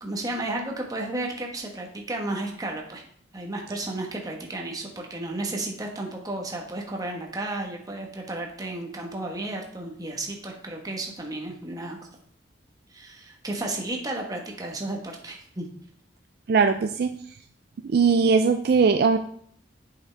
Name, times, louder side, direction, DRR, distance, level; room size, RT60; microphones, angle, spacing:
voice 1, 0.0-3.0 3.3-12.1 12.9-15.7, right 2 dB, 20° right, 0 dB, 1.2 m, -33 dB
voice 2, 16.5-17.2 17.8-19.2, right 5 dB, 55° right, 7 dB, 0.4 m, -20 dB
7.8 x 5.9 x 3.4 m, 0.63 s
head